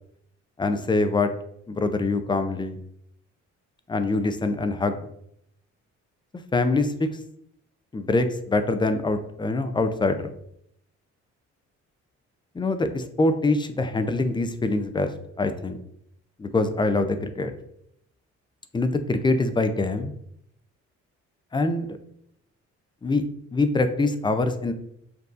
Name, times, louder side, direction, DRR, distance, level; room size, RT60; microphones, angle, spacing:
voice 1, 0.6-1.3 1.7-2.8 3.9-5.0 6.5-7.1 7.9-10.3 12.5-15.1 15.4-15.8 16.4-17.5 18.7-20.1 21.5-22.0 23.0-23.2 23.5-24.7, left 2 dB, 15° left, 9 dB, 0.4 m, -24 dB
6.8 x 2.6 x 2.5 m, 0.73 s
cardioid pair, 90°, 30 cm